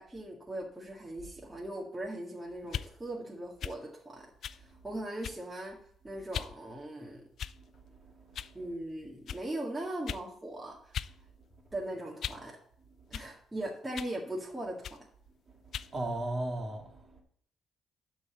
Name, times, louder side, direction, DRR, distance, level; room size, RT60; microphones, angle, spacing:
voice 1, 0.0-5.8 6.0-7.3 8.5-11.1 11.7-12.6 13.1-15.0, right 1 dB, 15° right, -3 dB, 1.9 m, -39 dB
sound 1, 2.6-2.9 3.6-3.8 4.4-4.6 5.2-5.5 6.3-6.5 7.4-7.8 8.3-8.5 9.3-9.4 10.1-10.3 10.9-11.1 11.5-12.5 13.1-13.3 13.9-14.2 14.8-15.0 15.7-15.9, left 9 dB, 65° left, 0.3 m, -39 dB
voice 2, 7.5-8.7 11.7-11.8 15.5-15.6 15.8-17.2, right 1 dB, 35° right, 1 dB, 2.4 m, -38 dB
11.5 x 4.0 x 7.1 m, 0.64 s
cardioid pair, 90°, 0 cm